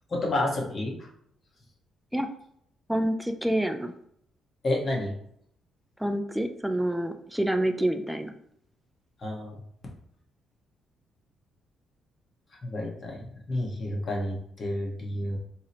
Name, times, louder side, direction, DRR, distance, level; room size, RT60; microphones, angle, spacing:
voice 1, 0.1-1.1 4.6-5.1 9.2-9.5 12.6-15.4, left 1 dB, 40° left, -1 dB, 0.9 m, -30 dB
voice 2, 2.9-3.9 6.0-8.3, right 1 dB, 5° right, 7 dB, 0.3 m, -27 dB
2.8 x 2.0 x 4.0 m, 0.68 s
cardioid pair, 90°, 0 cm